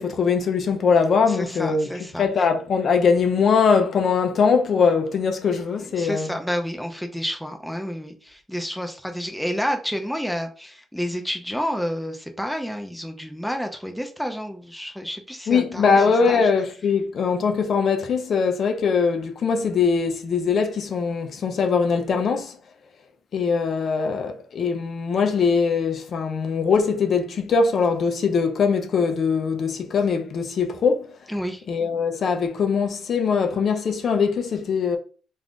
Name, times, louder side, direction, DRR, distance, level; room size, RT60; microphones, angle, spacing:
voice 1, 0.0-1.9 2.2-6.3 15.5-22.5 23.3-31.1 31.7-35.0, left 5 dB, 55° left, 0.5 m, -21 dB
voice 2, 1.3-2.2 5.8-16.5 31.3-31.6, equal, ahead, 0.5 m, -30 dB
2.5 x 2.4 x 3.5 m
cardioid pair, 90°, 0 cm